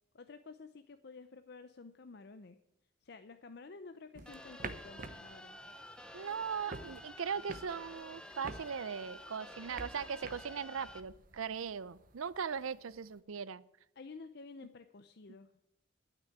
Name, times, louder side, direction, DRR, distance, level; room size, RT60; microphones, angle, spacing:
voice 1, 0.1-2.6 3.0-5.6 14.0-15.5, left 4 dB, 50° left, 9 dB, 0.6 m, -51 dB
sound 1, 4.1-13.2, right 3 dB, 40° right, 0.8 m, -50 dB
sound 2, 4.2-11.0, left 1 dB, 5° left, 0.7 m, -51 dB
voice 2, 6.1-13.6, right 6 dB, 85° right, 19 dB, 0.5 m, -39 dB
12.0 x 6.0 x 9.2 m, 0.84 s
head